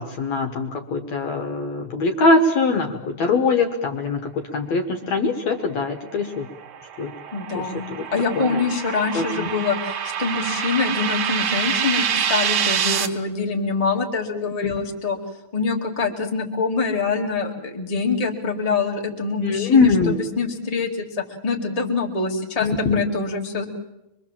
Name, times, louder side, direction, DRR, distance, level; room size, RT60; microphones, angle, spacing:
voice 1, 0.0-6.5 7.0-7.1 7.5-7.7 7.9-8.1 8.4-8.6 9.1-9.5 14.6-14.9 19.4-20.2 22.6-23.1, left 3 dB, 60° left, 5 dB, 2.3 m, -22 dB
sound 1, 6.2-13.1, right 8 dB, 55° right, 1.9 m, -26 dB
voice 2, 7.3-7.9 8.1-15.2 15.5-22.7 22.9-23.7, left 4 dB, 15° left, 1 dB, 1.8 m, -25 dB
24.5 x 23.5 x 7.4 m, 0.92 s
omnidirectional pair, 4.0 m